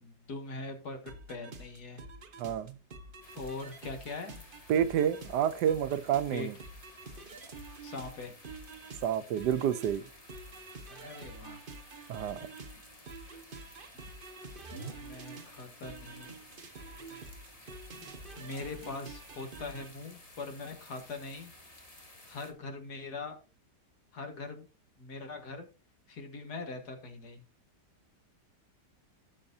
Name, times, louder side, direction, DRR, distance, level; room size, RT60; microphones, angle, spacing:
voice 1, 0.0-2.0 3.3-4.4 6.3-6.5 7.8-8.3 10.9-11.6 12.6-12.8 14.8-16.4 17.6-17.8 18.4-21.5 22.3-23.4 24.1-24.7 25.0-25.7 26.1-27.4, left 3 dB, 70° left, 2.3 m, -42 dB
sound 1, 1.1-19.9, right 3 dB, 40° right, 1.0 m, -48 dB
voice 2, 2.4-2.8 4.7-6.5 9.0-10.0 12.1-12.5, right 9 dB, 80° right, 1.2 m, -29 dB
sound 2, 3.2-22.5, left 1 dB, 20° left, 1.7 m, -55 dB
17.0 x 6.5 x 2.7 m
omnidirectional pair, 1.8 m